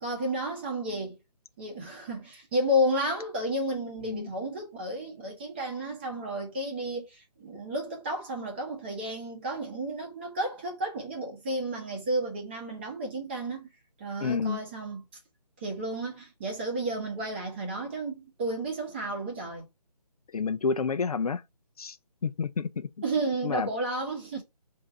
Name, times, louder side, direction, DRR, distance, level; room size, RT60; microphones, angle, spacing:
voice 1, 0.0-1.2 1.6-13.7 14.0-15.0 15.6-19.6 23.0-24.4, right 1 dB, 15° right, 0.8 m, -32 dB
voice 2, 14.2-14.6 20.3-21.4 21.8-22.0 22.2-22.9 23.4-23.7, left 5 dB, 60° left, 0.5 m, -29 dB
3.8 x 2.6 x 4.5 m
hypercardioid pair, 165°, 21 cm